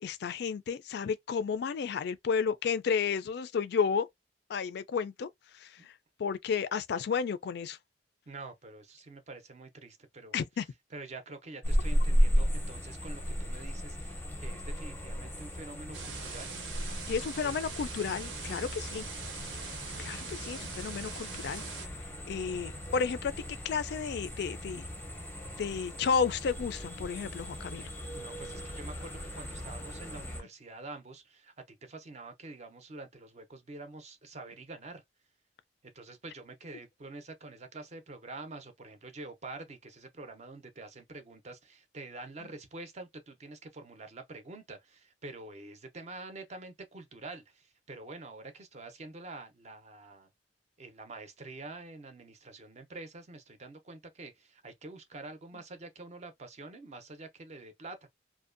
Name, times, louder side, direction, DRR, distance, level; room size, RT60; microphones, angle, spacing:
voice 1, 0.0-4.1 4.5-5.9 6.2-7.8 10.3-10.7 17.1-19.1 20.0-21.6 22.3-23.3 23.6-24.9 25.6-27.9, left 6 dB, 60° left, 0.3 m, -32 dB
voice 2, 8.3-10.4 10.9-16.6 17.4-17.6 28.1-35.0 35.8-50.3 50.8-58.1, right 3 dB, 35° right, 0.5 m, -46 dB
sound 1, 11.6-30.4, equal, 10° left, 0.5 m, -35 dB
sound 2, 15.9-21.9, right 5 dB, 75° right, 0.7 m, -43 dB
2.6 x 2.1 x 2.4 m
head